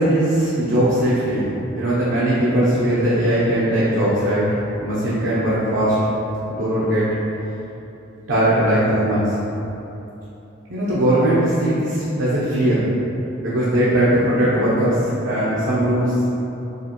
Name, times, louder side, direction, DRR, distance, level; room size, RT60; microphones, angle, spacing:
voice 1, 0.0-4.6 4.8-6.0 6.5-7.1 8.3-9.4 10.7-12.8 13.4-16.1, right 1 dB, 70° right, -10 dB, 0.7 m, -19 dB
4.9 x 2.5 x 3.0 m, 2.9 s
head